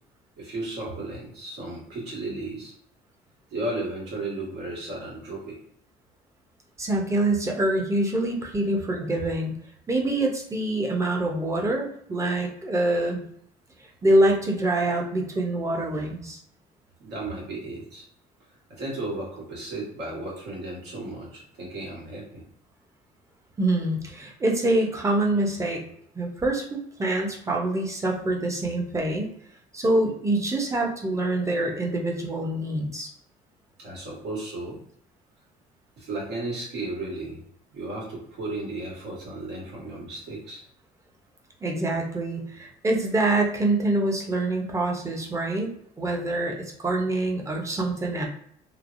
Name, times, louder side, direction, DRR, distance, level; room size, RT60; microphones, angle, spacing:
voice 1, 0.4-2.7 3.5-5.6 17.0-18.0 18.7-22.4 33.8-34.8 36.0-37.4 37.7-40.6, right 2 dB, 80° right, -4 dB, 1.4 m, -34 dB
voice 2, 6.8-9.5 9.9-13.2 14.0-16.4 23.6-25.8 26.1-29.3 29.7-33.1 41.6-45.7 46.0-48.3, right 2 dB, 15° right, 1 dB, 0.7 m, -25 dB
3.2 x 2.0 x 2.5 m, 0.66 s
cardioid pair, 110°, 17 cm